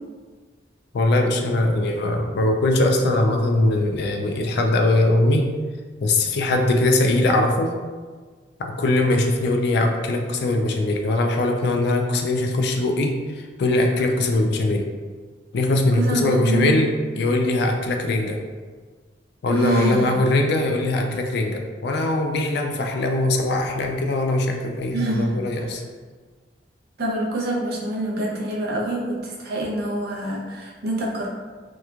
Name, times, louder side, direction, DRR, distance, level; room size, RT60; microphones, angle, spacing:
voice 1, 0.9-5.5 6.0-7.7 8.6-14.9 15.5-18.4 19.4-25.8, left 2 dB, 65° left, 3 dB, 0.3 m, -21 dB
voice 2, 15.9-16.9 19.5-20.2 24.9-25.7 27.0-31.3, right 2 dB, 60° right, -3 dB, 0.5 m, -26 dB
2.9 x 2.2 x 2.3 m, 1.5 s
head